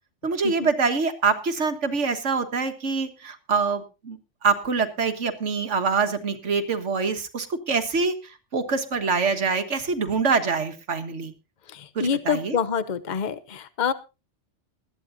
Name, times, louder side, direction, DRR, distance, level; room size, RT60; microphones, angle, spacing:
voice 1, 0.2-8.1 8.5-11.3 12.0-12.6, right 5 dB, 75° right, 7 dB, 1.7 m, -25 dB
voice 2, 11.7-13.9, left 6 dB, 40° left, 13 dB, 1.0 m, -27 dB
19.5 x 13.5 x 2.7 m, 0.28 s
omnidirectional pair, 1.2 m